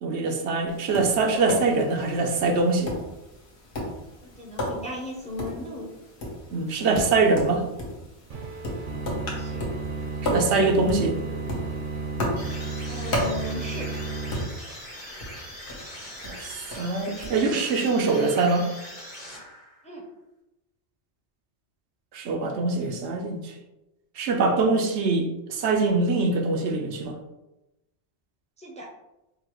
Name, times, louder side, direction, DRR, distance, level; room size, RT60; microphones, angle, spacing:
voice 1, 0.0-3.0 6.5-7.6 10.2-11.2 16.2-18.7 22.1-23.5 24.2-27.2, right 3 dB, 90° right, 3 dB, 0.9 m, -23 dB
Tap, 0.7-17.4, left 1 dB, 75° left, 1.2 m, -35 dB
voice 2, 4.2-5.9 9.3-9.6 12.8-13.9 19.8-20.0 28.6-28.9, left 1 dB, 10° left, -1 dB, 0.4 m, -37 dB
sound 1, 8.3-14.5, right 4 dB, 55° right, 0.7 m, -33 dB
sound 2, 12.4-19.9, equal, 55° left, 1.4 m, -41 dB
5.3 x 2.3 x 3.0 m, 0.96 s
omnidirectional pair, 1.1 m